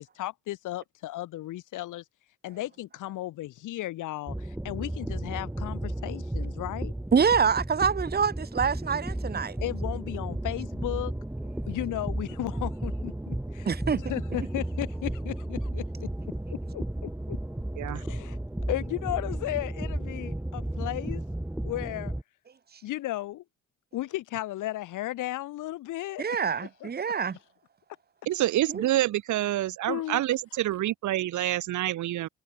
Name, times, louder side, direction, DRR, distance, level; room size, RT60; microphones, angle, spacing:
voice 1, 0.0-2.0 2.4-6.9 9.6-11.1 11.7-16.1 16.7-17.4 17.9-18.4 18.7-21.2 21.6-22.1 22.8-23.4 23.9-26.3 26.8-26.9 29.9-30.2, left 15 dB, 85° left, 2.9 m, -35 dB
sound 1, 4.3-22.2, right 1 dB, 5° right, 1.5 m, -34 dB
voice 2, 7.1-9.6 13.6-14.0 26.2-27.4 28.7-28.8, right 6 dB, 30° right, 1.4 m, -25 dB
voice 3, 28.3-32.3, right 14 dB, 75° right, 1.2 m, -27 dB
cardioid pair, 90°, 30 cm